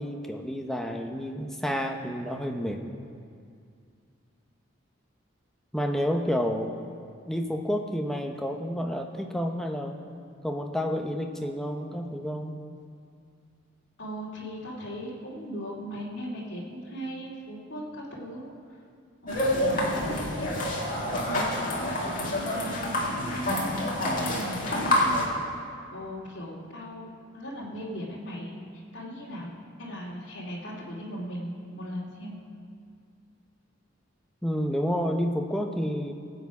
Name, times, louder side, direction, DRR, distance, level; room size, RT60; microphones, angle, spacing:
voice 1, 0.0-2.8 5.7-6.7 7.3-10.0 10.4-12.6 34.4-36.1, equal, ahead, 2 dB, 0.8 m, -30 dB
voice 2, 14.0-18.5 19.2-20.5 21.1-21.5 22.2-25.2 25.9-27.1 27.3-28.5 28.9-29.5 29.8-32.4, equal, 60° left, -6 dB, 2.5 m, -38 dB
sound 1, 19.3-25.2, left 1 dB, 40° left, 2.2 m, -27 dB
19.0 x 8.4 x 4.9 m, 2.3 s
head